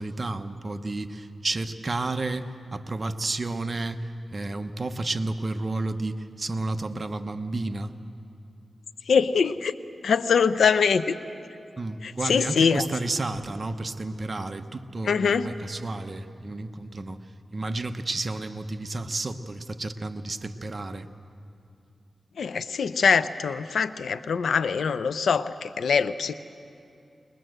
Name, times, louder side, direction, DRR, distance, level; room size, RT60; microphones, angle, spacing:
voice 1, 0.0-7.9 11.8-17.2 17.5-21.1, right 2 dB, 40° right, 8 dB, 1.0 m, -31 dB
voice 2, 9.1-9.7 10.0-11.2 12.0-12.9 15.0-15.5 22.4-26.3, left 6 dB, 85° left, 13 dB, 0.6 m, -23 dB
21.5 x 20.5 x 7.8 m, 2.6 s
cardioid pair, 75°, 0 cm